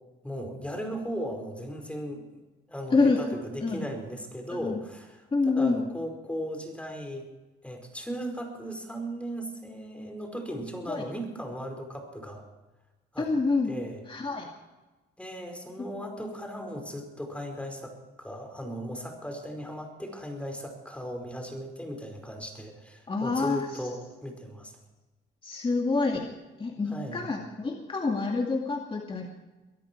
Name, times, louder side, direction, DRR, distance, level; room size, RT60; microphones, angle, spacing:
voice 1, 0.2-2.4 2.7-7.2 7.6-12.4 13.1-13.3 13.7-14.1 15.2-24.7 26.9-27.3, equal, 5° left, 3 dB, 4.9 m, -37 dB
voice 2, 2.9-3.2 3.6-3.9 4.6-4.8 5.3-5.8 10.9-11.1 13.2-13.7 14.1-14.5 15.8-15.9 23.1-23.8 25.4-26.3 26.6-29.3, left 3 dB, 25° left, 1 dB, 2.2 m, -27 dB
23.0 x 13.5 x 4.6 m, 1.1 s
cardioid pair, 90°, 20 cm